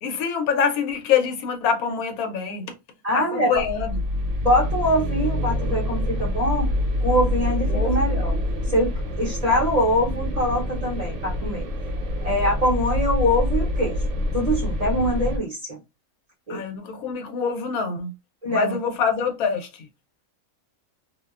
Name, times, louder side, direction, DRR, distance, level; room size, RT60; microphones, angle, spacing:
voice 1, 0.0-2.7 3.1-4.0 7.7-8.0 16.5-18.1 18.5-19.9, left 6 dB, 90° left, 1.1 m, -25 dB
voice 2, 3.0-3.6 4.4-6.7 7.0-8.3 8.6-8.9 9.2-11.7 12.2-14.0 14.3-15.8 16.5-16.6 18.4-18.8, equal, 35° right, 0.7 m, -23 dB
sound 1, 3.5-15.4, left 1 dB, 65° right, 1.0 m, -26 dB
2.6 x 2.1 x 2.3 m
omnidirectional pair, 1.5 m